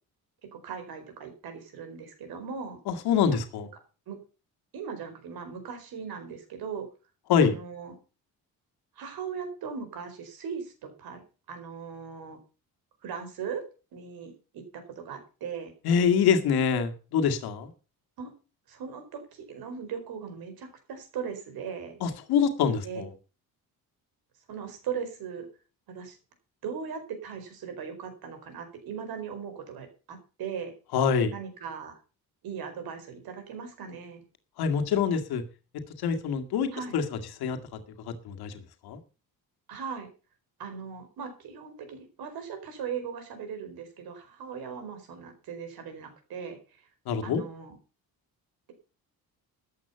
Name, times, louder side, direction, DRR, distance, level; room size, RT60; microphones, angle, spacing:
voice 1, 0.5-2.8 3.3-3.4 4.1-4.2 4.7-6.9 7.4-7.9 9.0-11.2 11.5-12.4 13.0-13.6 13.9-15.7 18.2-18.3 18.7-22.0 22.8-23.0 24.5-25.5 25.9-26.2 26.6-30.7 31.3-32.0 32.4-34.2 36.7-36.9 39.7-40.1 40.6-46.6 47.2-47.7, right 6 dB, 75° right, 7 dB, 4.8 m, -38 dB
voice 2, 2.9-3.7 7.3-7.5 15.8-17.7 22.0-23.1 30.9-31.3 34.6-35.4 36.0-37.6 38.1-39.0 47.1-47.4, left 6 dB, 85° left, 6 dB, 2.1 m, -25 dB
13.5 x 8.6 x 5.7 m, 0.34 s
cardioid pair, 165°, 37 cm